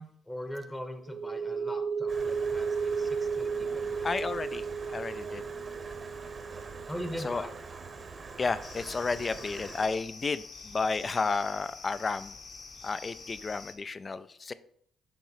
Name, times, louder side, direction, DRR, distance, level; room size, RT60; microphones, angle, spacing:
voice 1, 0.0-4.2 6.9-7.6, equal, 10° left, 7 dB, 0.9 m, -41 dB
sound 1, 1.1-8.5, right 5 dB, 70° right, 1.2 m, -33 dB
Stream, 2.1-9.9, right 4 dB, 40° right, 1.0 m, -45 dB
voice 2, 4.0-5.4 7.2-7.4 8.4-12.4 12.8-14.5, left 4 dB, 35° left, 15 dB, 0.4 m, -32 dB
sound 2, 8.6-13.7, left 4 dB, 50° left, 1.1 m, -47 dB
7.2 x 3.1 x 5.7 m, 0.65 s
cardioid pair, 90°, 0 cm